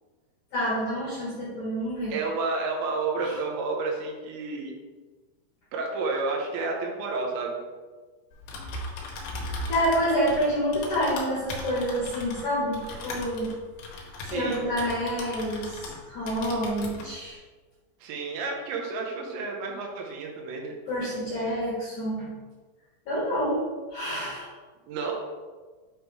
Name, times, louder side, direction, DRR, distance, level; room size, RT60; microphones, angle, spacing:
voice 1, 0.5-2.2 3.2-3.3 9.7-13.5 14.2-17.4 20.9-22.3 23.1-23.6 23.9-24.5, equal, 60° left, -7 dB, 2.2 m, -28 dB
voice 2, 2.1-4.7 5.7-7.6 14.2-14.6 18.0-20.7 24.9-25.2, right 3 dB, 80° right, 0 dB, 3.3 m, -30 dB
Typing, 8.3-16.0 16.3-17.1, left 2 dB, 75° left, 3.1 m, -38 dB
8.3 x 4.7 x 3.2 m, 1.4 s
omnidirectional pair, 5.2 m